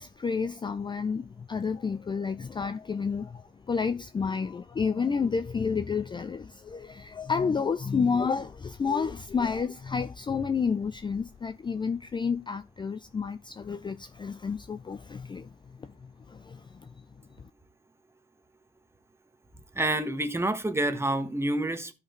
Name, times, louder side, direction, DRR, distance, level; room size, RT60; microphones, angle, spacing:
voice 1, 0.0-15.5 15.8-16.9 17.4-17.5, left 5 dB, 25° left, 0.4 m, -30 dB
voice 2, 19.7-21.9, right 1 dB, 10° right, 1.2 m, -28 dB
12.0 x 5.1 x 3.1 m
cardioid pair, 90°, 20 cm